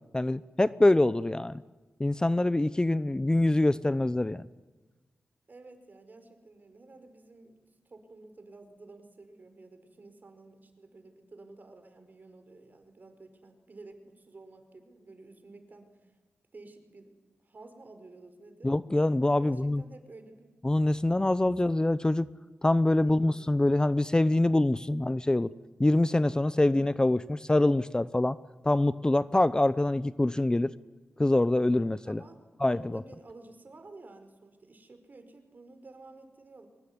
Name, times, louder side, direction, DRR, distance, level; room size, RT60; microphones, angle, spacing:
voice 1, 0.1-1.6 2.0-4.5 18.6-19.8 20.6-22.3 22.6-25.5 25.8-28.4 28.6-30.7 31.2-32.2 32.6-33.0, left 1 dB, 20° left, 17 dB, 0.8 m, -25 dB
voice 2, 5.5-7.6 7.8-16.1 16.5-17.2 17.4-18.7 19.4-20.6 22.9-23.5 26.7-27.0 32.0-36.7, right 3 dB, 50° right, 8 dB, 5.0 m, -52 dB
24.0 x 20.5 x 9.6 m, 1.2 s
cardioid pair, 50°, 4 cm